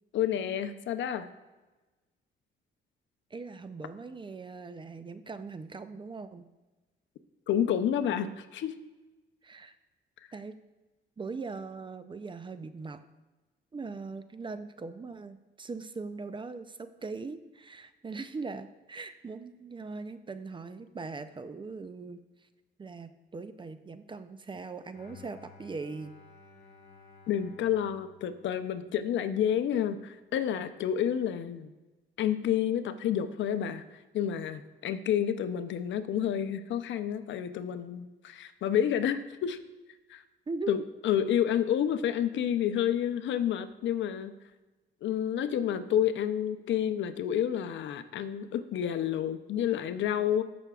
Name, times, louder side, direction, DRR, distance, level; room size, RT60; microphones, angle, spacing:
voice 1, 0.1-1.3 7.5-8.8 27.3-31.7 32.2-39.6 40.1-40.2 40.7-44.3 45.0-50.4, left 9 dB, 70° left, 11 dB, 0.6 m, -29 dB
voice 2, 3.3-6.5 9.4-9.7 10.3-10.6 11.2-13.0 13.7-22.2 22.8-26.2 40.5-40.7, right 4 dB, 25° right, 11 dB, 0.5 m, -40 dB
Bowed string instrument, 24.9-29.1, left 4 dB, 55° left, 1.9 m, -55 dB
15.0 x 6.0 x 2.4 m, 1.2 s
cardioid pair, 90°, 20 cm